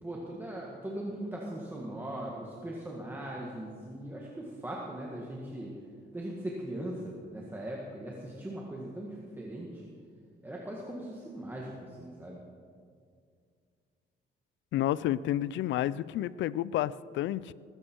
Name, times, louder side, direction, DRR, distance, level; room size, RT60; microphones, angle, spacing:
voice 1, 0.0-5.7 6.1-9.9 10.4-12.4, right 1 dB, 10° right, -3 dB, 1.7 m, -39 dB
voice 2, 14.7-17.5, left 13 dB, 80° left, 19 dB, 0.5 m, -30 dB
20.0 x 15.5 x 4.6 m, 2.2 s
cardioid pair, 145°, 19 cm